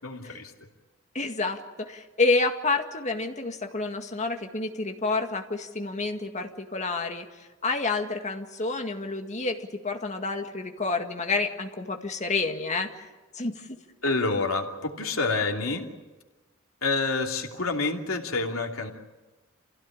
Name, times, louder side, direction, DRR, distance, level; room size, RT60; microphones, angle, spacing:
voice 1, 0.0-0.5 14.0-15.8 16.8-18.9, left 3 dB, 90° left, 1 dB, 2.9 m, -28 dB
voice 2, 1.1-13.1 13.3-13.7, left 3 dB, 35° left, 4 dB, 2.0 m, -29 dB
27.5 x 16.5 x 8.9 m, 1.2 s
head